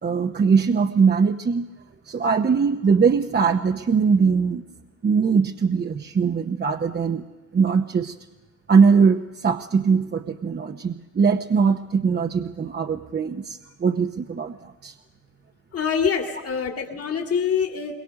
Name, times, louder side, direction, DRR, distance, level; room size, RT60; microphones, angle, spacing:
voice 1, 0.0-1.7 2.1-4.6 5.0-7.2 7.5-8.1 8.7-14.9, right 5 dB, 35° right, 5 dB, 0.9 m, -21 dB
voice 2, 15.7-17.9, left 6 dB, 50° left, 4 dB, 2.2 m, -25 dB
22.5 x 22.0 x 6.4 m, 1.2 s
cardioid pair, 90°, 30 cm